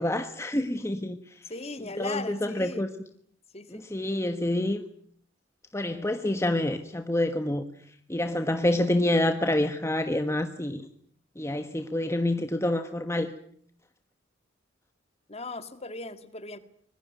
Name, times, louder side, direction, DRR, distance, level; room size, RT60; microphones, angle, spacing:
voice 1, 0.0-1.4 2.0-2.9 3.7-4.8 5.7-7.6 8.1-10.9 11.4-13.3, left 1 dB, 15° left, 1.3 m, -27 dB
voice 2, 1.5-2.8 3.5-3.9 15.3-16.6, left 3 dB, 35° left, 2.2 m, -38 dB
25.0 x 21.5 x 9.3 m
head